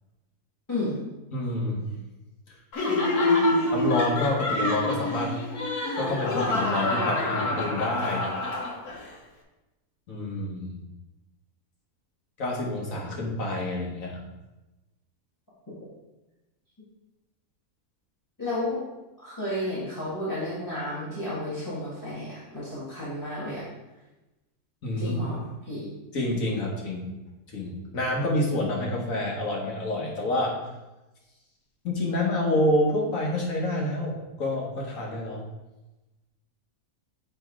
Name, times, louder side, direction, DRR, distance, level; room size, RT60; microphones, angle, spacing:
voice 1, 1.3-1.9 3.7-5.4 6.0-8.3 10.1-10.8 12.4-14.2 24.8-25.2 26.1-27.1 27.5-30.6 31.8-35.4, left 1 dB, 60° left, -2 dB, 1.7 m, -28 dB
Laughter, 2.7-9.1, left 2 dB, 80° left, 1.6 m, -26 dB
voice 2, 2.7-3.6 18.4-18.8 19.2-23.6 25.0-25.9, left 1 dB, 10° left, -10 dB, 1.8 m, -32 dB
7.9 x 3.5 x 4.7 m, 1.0 s
omnidirectional pair, 1.6 m